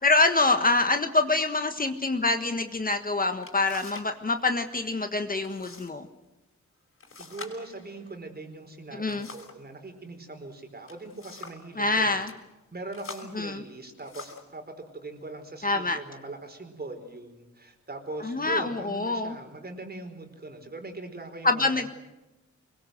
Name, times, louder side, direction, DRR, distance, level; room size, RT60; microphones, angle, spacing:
voice 1, 0.0-6.1 9.0-9.3 11.8-12.3 13.3-13.6 15.6-16.0 18.2-19.3 21.4-21.9, left 3 dB, 30° left, 6 dB, 1.5 m, -25 dB
sound 1, 3.4-4.2 4.4-4.9 5.4-5.9 6.2-6.3 7.0-9.7 10.6-11.7 12.1-12.4 12.9-14.6 15.3-15.5 16.0-16.5, left 4 dB, 45° left, 5.5 m, -46 dB
voice 2, 7.2-12.3 12.7-21.9, right 2 dB, 35° right, 5 dB, 4.6 m, -41 dB
24.5 x 22.5 x 7.8 m, 1.0 s
wide cardioid pair, 110°, 29 cm